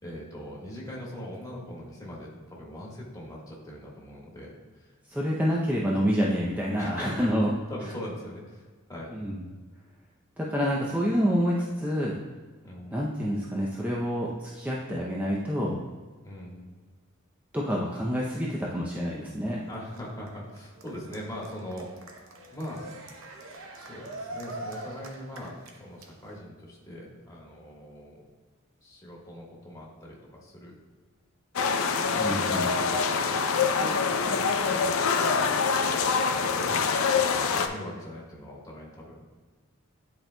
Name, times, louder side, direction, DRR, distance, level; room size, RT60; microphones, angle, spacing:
voice 1, 0.0-4.9 6.8-7.3 7.7-9.1 11.6-11.7 12.6-12.9 16.2-16.8 19.7-22.2 22.5-22.9 23.7-28.2 28.8-30.7 32.1-32.5 32.9-35.2 35.8-37.0 37.4-39.2, equal, 15° left, -4 dB, 1.5 m, -41 dB
voice 2, 5.1-7.5 9.1-9.4 10.4-12.2 12.9-15.8 17.5-19.6 32.1-32.7, equal, 10° right, -4 dB, 0.6 m, -27 dB
Cheering, 19.4-26.4, right 2 dB, 70° right, 0.8 m, -44 dB
sound 1, 31.6-37.7, left 5 dB, 80° left, 0.5 m, -25 dB
10.5 x 4.4 x 2.2 m, 1.4 s
head